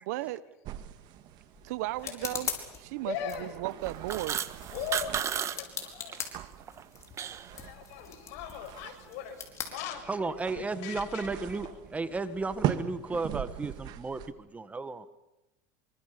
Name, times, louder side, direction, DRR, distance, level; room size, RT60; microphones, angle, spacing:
voice 1, 0.0-0.4 1.6-2.5 2.8-4.4, right 17 dB, 80° right, 16 dB, 1.2 m, -35 dB
sound 1, 0.6-14.3, right 12 dB, 55° right, 1.8 m, -41 dB
sound 2, 0.7-10.5, left 7 dB, 35° left, 4.9 m, -43 dB
voice 2, 3.0-3.6 4.7-6.2 7.5-9.4 9.6-11.8, left 9 dB, 70° left, 3 dB, 7.1 m, -40 dB
sound 3, 3.8-5.6 5.8-6.2 6.6-7.5, right 8 dB, 35° right, 1.6 m, -33 dB
voice 3, 10.1-15.1, right 3 dB, 15° right, 12 dB, 1.4 m, -34 dB
25.5 x 24.5 x 6.9 m, 0.95 s
supercardioid pair, 115°, 9 cm